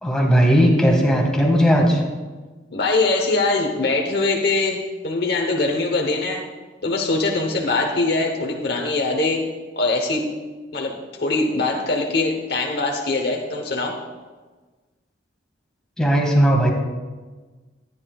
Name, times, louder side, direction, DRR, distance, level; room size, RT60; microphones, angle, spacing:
voice 1, 0.0-2.0 16.0-16.7, equal, 5° left, -1 dB, 1.8 m, -17 dB
voice 2, 2.7-6.4 6.8-9.4 9.8-10.2 10.7-10.9 11.2-14.0, left 3 dB, 60° left, 1 dB, 1.0 m, -22 dB
13.5 x 9.9 x 2.4 m, 1.3 s
head